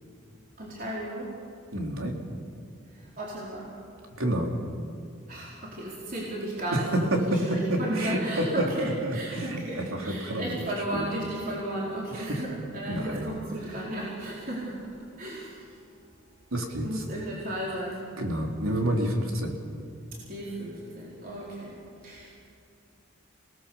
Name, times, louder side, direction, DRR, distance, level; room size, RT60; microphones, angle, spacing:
voice 1, 0.6-1.3 3.2-3.7 5.3-6.9 7.3-14.8 15.2-15.5 16.8-18.1 20.3-21.7 22.0-22.3, right 1 dB, 45° right, -5 dB, 4.5 m, -34 dB
voice 2, 1.7-2.2 4.2-4.6 6.7-11.1 12.1-12.4 12.9-13.3 16.5-16.9 18.2-19.6, right 1 dB, 85° right, 1 dB, 3.7 m, -29 dB
28.5 x 18.5 x 7.2 m, 2.4 s
head